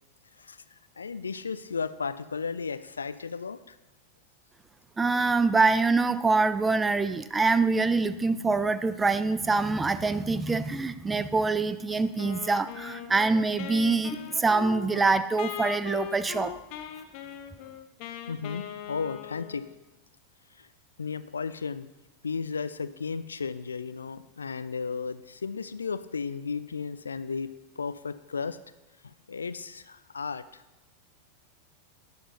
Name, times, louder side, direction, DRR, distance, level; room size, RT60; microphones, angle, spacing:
voice 1, 1.0-3.8 18.3-19.7 20.5-20.7 21.0-21.9 22.2-27.5 27.8-28.6 29.0-30.6, left 5 dB, 75° left, 14 dB, 0.4 m, -34 dB
voice 2, 5.0-16.5, right 3 dB, 10° right, 13 dB, 0.5 m, -25 dB
sound 1, 5.1-14.5, left 1 dB, 40° right, 2.8 m, -55 dB
Wind instrument woodwind instrument, 12.2-19.9, left 11 dB, 45° left, 0.9 m, -40 dB
13.5 x 9.6 x 2.7 m, 0.99 s
figure-of-eight pair, 90°, 0 cm